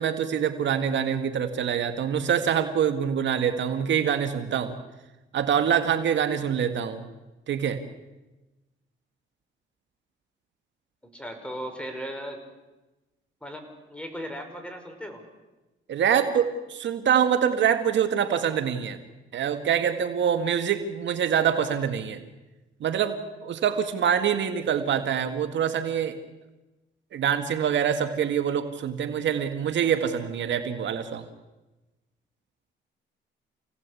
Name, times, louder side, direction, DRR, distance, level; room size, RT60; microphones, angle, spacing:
voice 1, 0.0-4.7 5.3-7.1 7.5-7.8 15.9-19.0 19.3-22.2 22.8-26.2 27.1-31.2, right 8 dB, 65° right, 8 dB, 2.0 m, -25 dB
voice 2, 11.1-12.4 13.4-15.2, equal, 5° left, 5 dB, 5.8 m, -37 dB
28.5 x 18.0 x 8.5 m, 1.1 s
cardioid pair, 90°, 20 cm